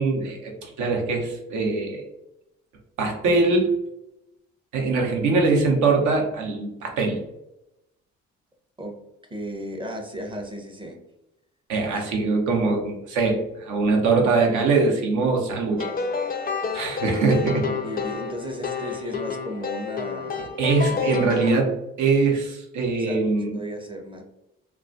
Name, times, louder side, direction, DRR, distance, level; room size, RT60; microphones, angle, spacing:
voice 1, 0.0-2.0 3.0-3.7 4.7-7.2 11.7-15.8 16.7-17.7 20.6-23.6, right 3 dB, 65° right, 1 dB, 0.8 m, -22 dB
voice 2, 9.3-11.0 17.7-20.6 22.9-24.2, equal, 15° right, 2 dB, 0.6 m, -35 dB
sound 1, 15.8-21.5, left 5 dB, 30° left, 0.4 m, -29 dB
2.3 x 2.2 x 2.5 m, 0.88 s
hypercardioid pair, 55°, 31 cm